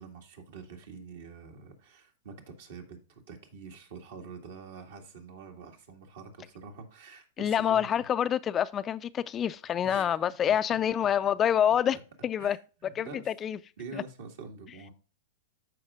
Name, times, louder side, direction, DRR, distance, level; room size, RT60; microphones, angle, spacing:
voice 1, 0.0-7.9 9.8-10.3 10.7-10.8 11.9-12.0 12.4-13.3 13.8-14.9, right 5 dB, 70° right, 2.0 m, -46 dB
voice 2, 7.4-12.0 12.2-12.6 13.0-13.6, left 9 dB, 25° left, 0.4 m, -27 dB
13.5 x 5.1 x 2.4 m
hypercardioid pair, 110°, 0 cm